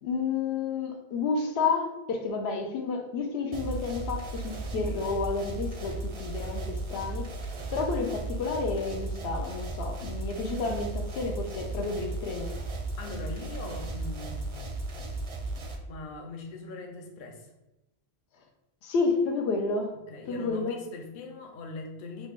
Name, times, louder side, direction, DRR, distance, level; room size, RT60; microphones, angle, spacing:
voice 1, 0.0-7.3 7.7-12.6 18.8-19.9 20.3-20.8, left 4 dB, 90° left, 3 dB, 0.9 m, -30 dB
sound 1, 3.5-15.8, right 2 dB, 45° right, 0.4 m, -35 dB
voice 2, 13.0-14.8 15.9-17.5 20.1-22.3, left 3 dB, 60° left, 2 dB, 0.7 m, -41 dB
3.2 x 2.4 x 3.5 m, 0.96 s
omnidirectional pair, 1.0 m